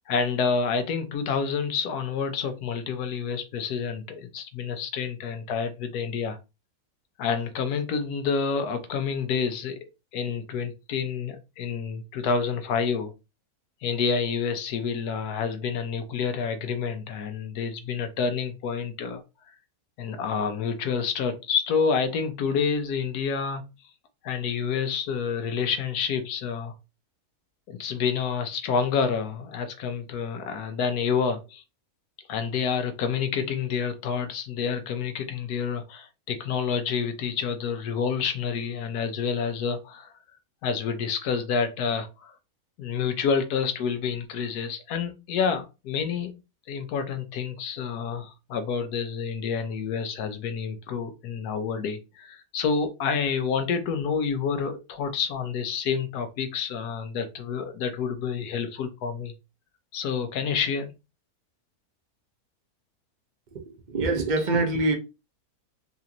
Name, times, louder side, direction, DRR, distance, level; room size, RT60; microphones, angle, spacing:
voice 1, 0.1-6.4 7.2-9.8 10.1-13.1 13.8-19.2 20.0-23.6 24.2-26.7 27.7-31.6 32.3-40.1 40.6-42.3 42.8-46.3 46.7-59.3 59.9-60.9, left 6 dB, 85° left, 1.3 m, -28 dB
voice 2, 63.5-64.9, right 2 dB, 40° right, 0.7 m, -25 dB
4.2 x 2.5 x 2.8 m
omnidirectional pair, 1.6 m